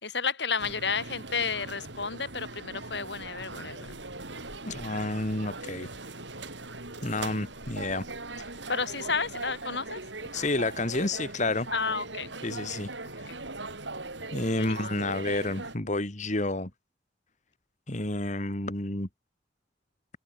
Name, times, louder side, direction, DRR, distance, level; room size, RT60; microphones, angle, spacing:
voice 1, 0.0-4.0 7.3-7.4 8.7-10.0 11.7-12.3 14.6-15.1, left 5 dB, 65° left, 4.0 m, -32 dB
sound 1, 0.6-15.7, right 3 dB, 75° right, 7.3 m, -40 dB
voice 2, 4.7-5.9 7.0-8.0 8.4-8.5 10.3-11.7 12.4-12.9 13.2-13.3 14.3-16.7 17.9-19.1, left 2 dB, 40° left, 2.1 m, -30 dB
open air
head